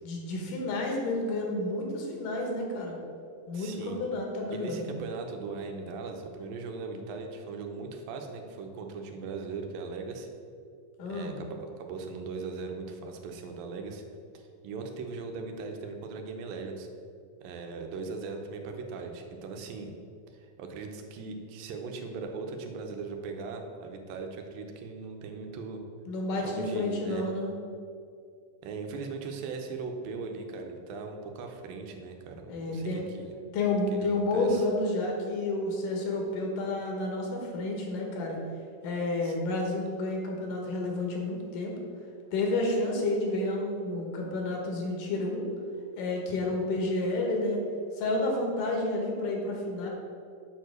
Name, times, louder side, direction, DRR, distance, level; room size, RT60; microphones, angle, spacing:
voice 1, 0.0-3.0 3.5-4.9 11.0-11.4 26.1-27.5 32.5-33.0 33.5-38.4 38.8-41.8 42.3-45.4 46.0-47.6 48.0-49.9, left 2 dB, 70° left, 0 dB, 2.7 m, -30 dB
voice 2, 3.5-4.0 4.5-10.3 11.1-14.0 14.3-16.9 17.4-19.9 20.3-25.8 26.4-27.3 28.6-33.3 33.9-34.6 39.2-39.4, right 4 dB, 90° right, 4 dB, 2.5 m, -39 dB
7.3 x 4.6 x 6.3 m, 2.4 s
omnidirectional pair, 4.0 m